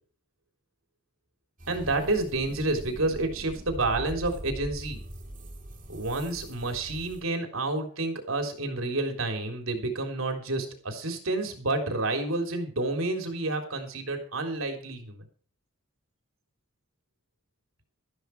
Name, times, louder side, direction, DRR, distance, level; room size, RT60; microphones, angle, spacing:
sound 1, 1.6-7.2, equal, 40° right, 3.1 m, -42 dB
voice 1, 1.7-5.0 5.9-15.2, right 2 dB, 85° right, 4 dB, 3.7 m, -29 dB
14.0 x 12.0 x 4.9 m, 0.41 s
head